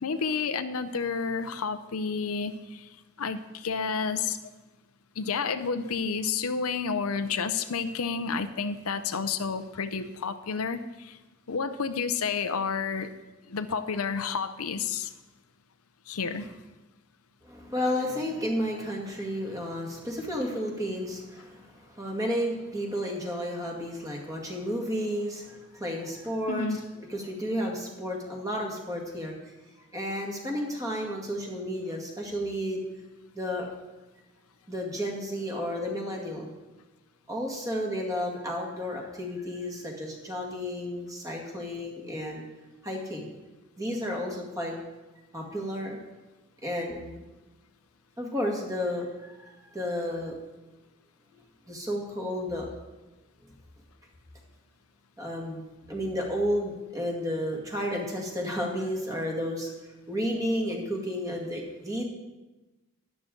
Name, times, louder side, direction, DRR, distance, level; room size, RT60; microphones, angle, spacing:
voice 1, 0.0-2.9 3.2-4.4 5.2-11.2 11.5-13.1 13.5-15.1 16.1-16.6 26.5-26.8, left 5 dB, 85° left, 10 dB, 0.6 m, -30 dB
voice 2, 17.4-26.7 26.9-29.3 29.9-32.8 33.3-33.7 34.7-36.5 37.3-42.4 42.8-43.3 43.8-44.7 45.3-46.0 46.6-47.2 48.2-50.3 51.3-51.4 51.7-52.7 55.2-59.7 60.1-62.0, equal, 15° right, 0 dB, 1.9 m, -32 dB
12.5 x 11.0 x 3.8 m, 1.1 s
head